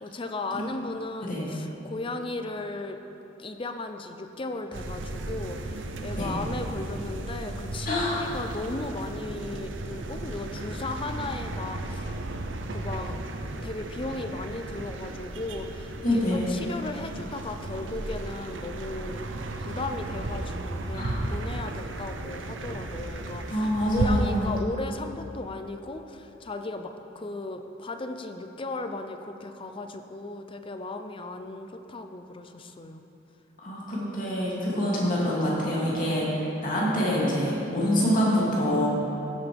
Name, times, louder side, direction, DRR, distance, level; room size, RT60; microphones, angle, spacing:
voice 1, 0.0-3.0 3.4-12.3 12.7-13.2 13.6-19.3 19.6-33.0, left 2 dB, 25° left, 7 dB, 0.5 m, -36 dB
sound 1, 4.7-24.6, right 2 dB, 70° right, 0.7 m, -34 dB
voice 2, 7.8-8.2 16.0-16.5 20.9-21.2 23.5-24.6 33.6-38.9, equal, 45° left, -6 dB, 2.8 m, -26 dB
16.0 x 8.2 x 3.5 m, 3.0 s
head